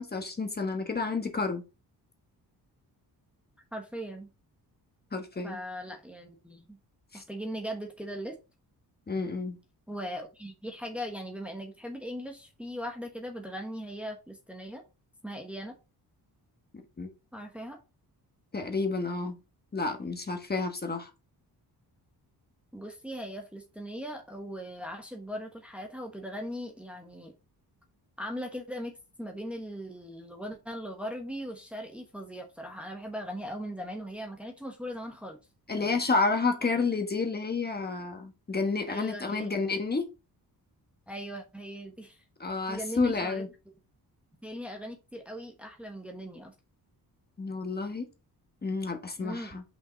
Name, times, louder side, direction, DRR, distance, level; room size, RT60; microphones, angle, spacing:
voice 1, 0.0-1.6 5.1-5.6 7.1-7.2 9.1-9.6 17.0-17.1 18.5-19.4 19.7-21.1 35.7-40.1 42.4-43.5 47.4-48.1 48.6-49.6, left 4 dB, 25° left, 4 dB, 1.3 m, -30 dB
voice 2, 3.7-4.3 5.4-6.8 7.1-8.3 9.9-14.8 15.2-15.8 17.3-17.8 22.7-27.3 28.2-35.4 35.7-36.0 36.6-36.8 38.9-39.6 41.1-42.2 42.7-43.4 44.4-46.5 49.2-49.6, equal, 5° right, 2 dB, 1.2 m, -39 dB
5.7 x 5.7 x 4.0 m, 0.28 s
wide cardioid pair, 130°, 39 cm